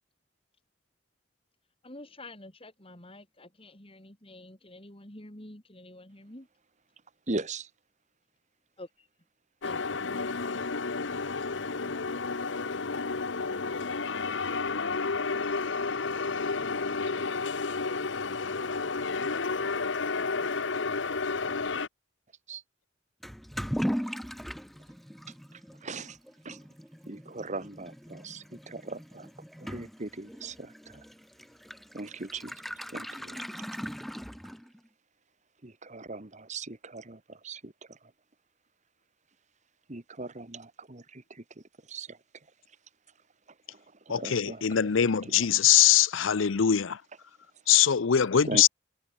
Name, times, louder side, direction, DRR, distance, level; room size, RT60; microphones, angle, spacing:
voice 1, 1.8-6.5 8.8-9.1 9.6-10.0, left 1 dB, 30° left, 3.7 m, -48 dB
voice 2, 7.3-7.6 22.5-22.6 25.5-26.2 26.4-26.6 27.1-29.3 29.6-31.0 31.9-32.5 32.9-33.4 35.6-38.0 39.9-41.4 41.9-42.2 43.7-44.9 45.2-45.4 48.4-48.7, right 3 dB, 35° right, 1.5 m, -39 dB
sound 1, 9.6-21.9, left 4 dB, 65° left, 1.0 m, -31 dB
Toilet flush / Liquid, 23.2-34.9, equal, ahead, 6.9 m, -39 dB
voice 3, 44.1-47.0 47.7-48.7, left 9 dB, 80° left, 0.6 m, -22 dB
head